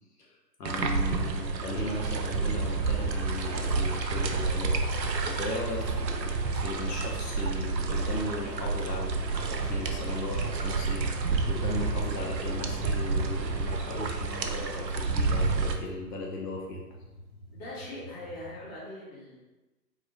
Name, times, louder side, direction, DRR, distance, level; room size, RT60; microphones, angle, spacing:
voice 1, 0.2-16.8, left 2 dB, 70° left, -2 dB, 0.9 m, -37 dB
sound 1, 0.7-15.8, right 4 dB, 85° right, 0.6 m, -29 dB
sound 2, 1.0-18.6, right 1 dB, ahead, 0.7 m, -46 dB
voice 2, 17.5-19.4, left 1 dB, 25° left, -8 dB, 1.0 m, -41 dB
3.9 x 2.5 x 3.0 m, 1.1 s
figure-of-eight pair, 140°, 50 cm